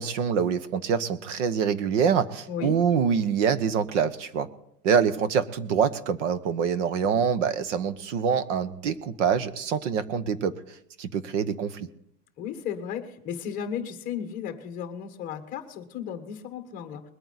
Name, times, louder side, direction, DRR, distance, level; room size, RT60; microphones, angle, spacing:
voice 1, 0.0-4.5 4.8-10.5 11.0-11.9, right 7 dB, 50° right, 14 dB, 1.0 m, -25 dB
voice 2, 2.5-2.8 12.4-17.0, left 8 dB, 20° left, 7 dB, 1.3 m, -34 dB
21.0 x 9.1 x 4.0 m, 0.72 s
supercardioid pair, 170°, 46 cm